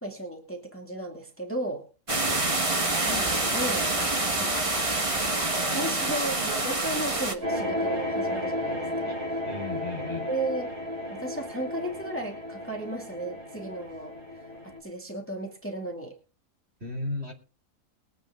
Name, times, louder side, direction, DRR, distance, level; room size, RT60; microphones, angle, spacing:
voice 1, 0.0-1.9 3.1-5.3 5.7-9.4 10.3-10.7 11.1-14.1 14.6-16.2, right 2 dB, 10° left, 1 dB, 2.3 m, -35 dB
sound 1, 2.1-7.3, right 2 dB, 20° right, 1.3 m, -26 dB
sound 2, 7.4-14.8, left 1 dB, 65° right, 4.4 m, -33 dB
voice 2, 9.5-10.3 16.8-17.3, left 3 dB, 40° right, 1 dB, 3.1 m, -35 dB
21.5 x 8.8 x 3.8 m, 0.35 s
omnidirectional pair, 1.7 m